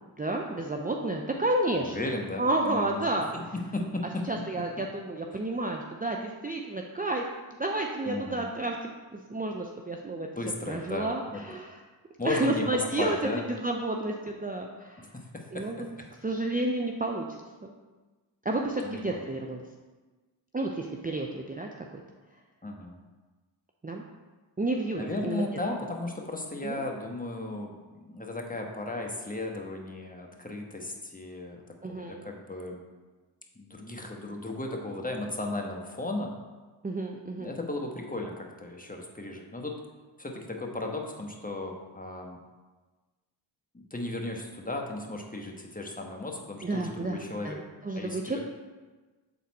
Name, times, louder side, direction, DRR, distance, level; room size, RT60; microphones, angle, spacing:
voice 1, 0.2-2.0 2.4-3.3 4.3-7.3 7.6-8.8 9.1-10.3 10.7-11.8 12.2-15.1 15.5-15.8 16.2-17.7 18.4-19.6 20.5-22.0 23.8-24.0 24.6-25.5 26.6-26.8 31.8-32.3 36.8-37.5 46.6-48.4, right 2 dB, 20° right, 1 dB, 0.6 m, -31 dB
voice 2, 1.8-3.0 3.3-4.3 8.0-8.5 10.3-11.4 12.2-13.5 15.0-15.7 18.8-19.2 22.6-23.0 25.0-31.6 31.9-32.8 33.5-36.3 37.4-39.8 40.2-42.4 43.7-47.6 48.0-48.4, left 2 dB, 15° left, 1 dB, 1.3 m, -35 dB
7.5 x 4.2 x 4.1 m, 1.3 s
cardioid pair, 45°, 49 cm